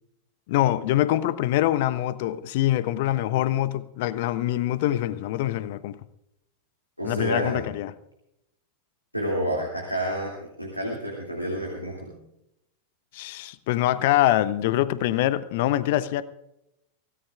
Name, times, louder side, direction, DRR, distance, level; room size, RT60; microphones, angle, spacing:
voice 1, 0.5-6.0 7.0-7.9 13.1-16.2, left 14 dB, 50° left, 0.7 m, -24 dB
voice 2, 7.0-7.7 9.1-10.3 10.6-12.1, equal, 90° right, 2.6 m, -29 dB
24.5 x 17.0 x 2.5 m
figure-of-eight pair, 90°, 0 cm